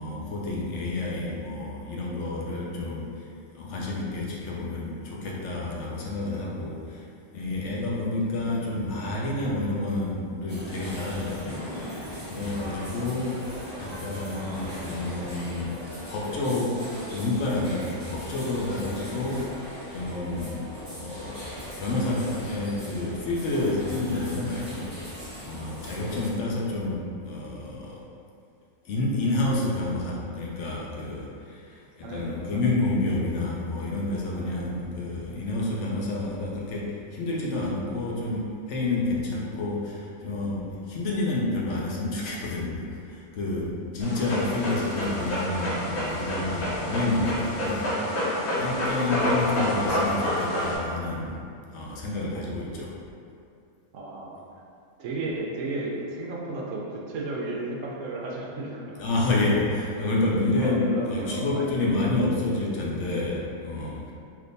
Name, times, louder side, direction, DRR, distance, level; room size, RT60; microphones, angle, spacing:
voice 1, 0.0-3.1 3.5-7.1 7.3-11.7 12.3-13.3 13.8-15.8 16.1-16.8 17.1-20.6 20.9-21.5 21.8-24.9 25.4-28.0 28.8-51.4 51.7-53.0 59.0-64.1, left 2 dB, 65° left, -4 dB, 0.8 m, -29 dB
sound 1, 10.5-26.3, equal, 10° left, 1.1 m, -39 dB
voice 2, 32.0-32.5 34.3-34.7 53.9-54.4 55.0-59.0 60.6-62.3, right 2 dB, 70° right, -3 dB, 0.9 m, -34 dB
Dog, 44.0-50.8, equal, 80° left, 1.3 m, -28 dB
3.4 x 2.8 x 2.6 m, 2.4 s
omnidirectional pair, 1.5 m